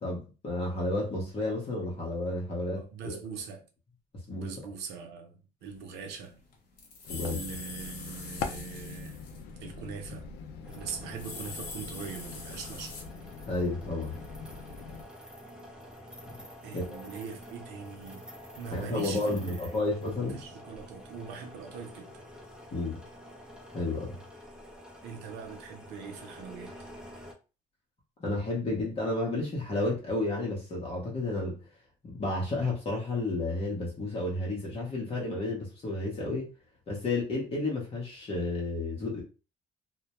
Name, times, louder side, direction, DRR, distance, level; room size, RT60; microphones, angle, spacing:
voice 1, 0.0-3.2 4.3-4.5 7.1-7.4 13.5-14.2 16.7-17.0 18.7-20.4 22.7-23.0 23.7-24.1 28.2-31.6 32.0-36.5 36.9-39.2, left 2 dB, 35° left, 0.7 m, -31 dB
voice 2, 2.7-3.6 4.4-6.4 7.2-9.2 9.6-10.3 10.7-13.0 16.6-18.3 18.6-19.8 20.3-22.1 25.0-26.7, right 6 dB, 90° right, 0.6 m, -42 dB
sound 1, 6.0-6.1 6.2-9.5 9.8-10.0 10.9-13.0, left 4 dB, 60° left, 0.9 m, -43 dB
sound 2, 7.1-15.0, left 5 dB, 75° left, 0.4 m, -42 dB
sound 3, 10.6-27.3, equal, 5° right, 0.5 m, -48 dB
2.1 x 2.1 x 2.9 m
cardioid pair, 110°, 17 cm